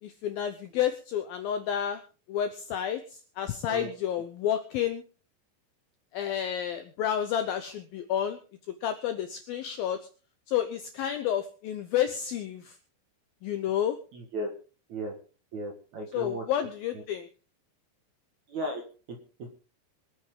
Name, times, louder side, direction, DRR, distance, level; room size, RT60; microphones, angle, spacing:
voice 1, 0.0-2.0 2.3-5.0 6.1-8.4 8.8-10.1 10.5-12.8 13.4-14.0 16.1-17.3, left 10 dB, 75° left, 8 dB, 2.2 m, -30 dB
voice 2, 15.5-16.4 18.5-18.8 19.1-19.5, right 1 dB, 55° right, 3 dB, 2.3 m, -35 dB
25.0 x 8.9 x 3.8 m, 0.38 s
omnidirectional pair, 5.3 m